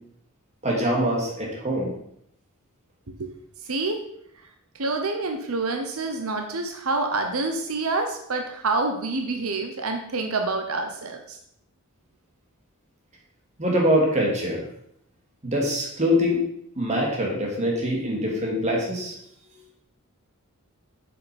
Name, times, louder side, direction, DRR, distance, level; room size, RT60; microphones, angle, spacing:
voice 1, 0.6-1.9 13.6-14.6 15.4-16.5 16.8-19.1, equal, 35° right, -2 dB, 2.7 m, -24 dB
voice 2, 3.6-4.1 4.8-11.4, right 3 dB, 90° right, 4 dB, 1.0 m, -27 dB
7.8 x 6.8 x 5.4 m, 0.72 s
head